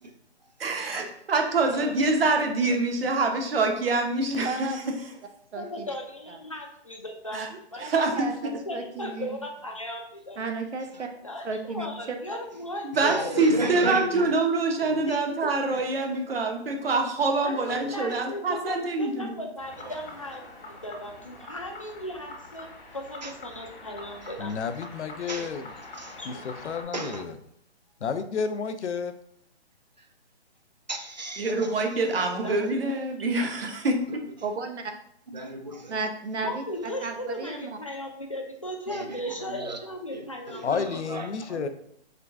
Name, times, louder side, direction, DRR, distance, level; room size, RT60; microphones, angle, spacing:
voice 1, 0.6-4.8 7.3-7.5 7.8-8.6 12.8-19.4 31.4-34.2, right 3 dB, 60° right, 4 dB, 0.9 m, -25 dB
voice 2, 4.4-4.9 5.5-5.9 6.3-6.4 7.3-7.5 7.8-7.9 8.2-9.4 10.4-11.1 11.4-12.2 34.4-34.9 35.9-36.6 37.0-37.7, right 4 dB, 90° right, 5 dB, 0.9 m, -33 dB
voice 3, 5.5-7.4 7.7-8.2 8.7-10.4 11.2-13.5 13.8-14.0 15.1-15.2 17.4-24.5 25.2-25.5 26.2-26.3 31.8-32.8 36.4-40.9, left 1 dB, 30° left, 2 dB, 0.4 m, -37 dB
voice 4, 13.1-14.3 15.0-15.2 15.7-15.8 16.3-16.4 17.7-17.8 23.2-23.3 25.3-25.5 25.9-26.1 26.9-27.3 30.9-31.9 35.3-36.0 38.9-39.8 40.1-41.7, right 2 dB, 40° right, 6 dB, 0.4 m, -35 dB
sound 1, 19.6-26.8, left 2 dB, 60° left, 1.3 m, -45 dB
voice 5, 24.4-25.7 26.3-27.4 28.0-29.1 40.6-41.7, left 6 dB, 85° left, 9 dB, 0.6 m, -31 dB
3.8 x 3.3 x 3.4 m, 0.71 s
hypercardioid pair, 175°, 33 cm